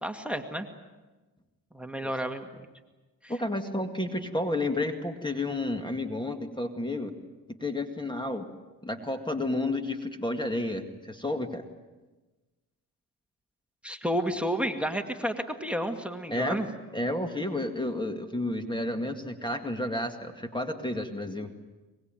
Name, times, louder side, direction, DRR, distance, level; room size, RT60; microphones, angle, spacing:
voice 1, 0.0-0.7 1.7-2.5 3.2-3.3 13.8-16.7, equal, 5° right, 6 dB, 2.2 m, -31 dB
voice 2, 3.3-7.1 7.5-8.5 8.8-11.6 16.3-16.6 16.9-21.5, left 1 dB, 10° left, 7 dB, 2.2 m, -31 dB
23.5 x 22.0 x 9.1 m, 1.2 s
cardioid pair, 75°, 37 cm